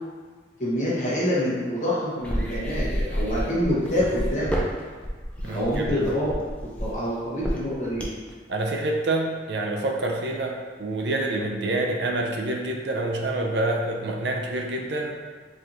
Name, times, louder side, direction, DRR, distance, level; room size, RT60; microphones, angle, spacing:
voice 1, 0.6-4.6 5.4-6.3 6.8-8.0, equal, 40° left, -8 dB, 0.8 m, -26 dB
sound 1, 2.2-8.3, equal, 5° left, 0.3 m, -29 dB
voice 2, 5.4-6.1 8.5-15.2, right 2 dB, 75° right, 1 dB, 0.5 m, -27 dB
4.2 x 2.8 x 2.5 m, 1.4 s
head